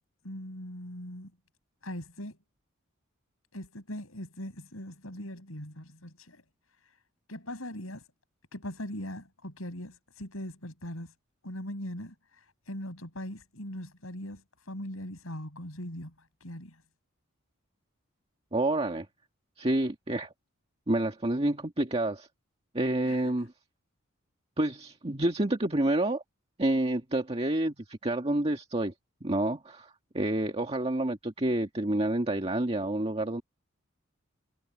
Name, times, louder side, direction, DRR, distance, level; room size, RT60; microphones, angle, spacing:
voice 1, 0.2-1.3 1.8-2.4 3.5-6.4 6.7-7.0 7.3-8.1 8.5-11.1 11.4-16.8 23.1-23.5, left 1 dB, 75° left, 7.6 m, -41 dB
voice 2, 18.5-19.1 19.6-20.3 20.9-22.3 22.7-23.5 24.6-26.2 26.6-28.9 29.2-33.4, right 1 dB, 30° right, 1.8 m, -28 dB
head